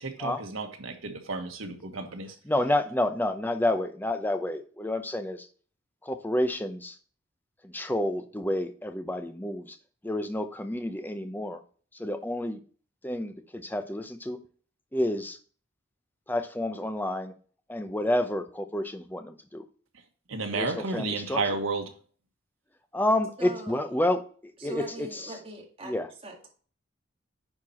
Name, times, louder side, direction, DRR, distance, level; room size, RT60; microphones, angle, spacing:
voice 1, 0.0-2.4 20.3-21.9, right 3 dB, 85° right, 5 dB, 1.5 m, -32 dB
voice 2, 2.4-5.5 6.0-7.0 7.6-9.8 10.0-11.6 11.9-12.6 13.0-14.4 14.9-15.4 16.3-17.3 17.7-19.6 20.5-21.4 22.9-25.3 25.8-26.1, left 1 dB, 10° left, 8 dB, 0.7 m, -29 dB
voice 3, 23.4-23.8 24.6-25.9 26.2-26.5, right 1 dB, 25° right, 0 dB, 2.1 m, -41 dB
9.7 x 4.5 x 4.3 m, 0.42 s
head